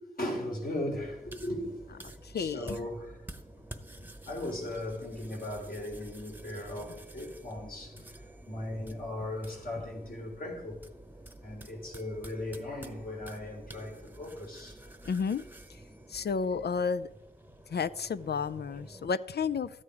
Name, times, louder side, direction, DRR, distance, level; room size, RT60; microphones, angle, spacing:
voice 1, 0.2-1.8 2.3-3.2 4.0-10.8 11.4-15.4 17.8-17.9, left 1 dB, 60° left, 3.4 m, -38 dB
sound 1, 0.9-19.1, right 1 dB, 10° right, 0.9 m, -49 dB
voice 2, 2.3-2.8 15.1-15.4 16.1-17.1 17.7-19.7, left 5 dB, 85° left, 0.5 m, -31 dB
13.5 x 8.7 x 4.8 m
wide cardioid pair, 80°, 17 cm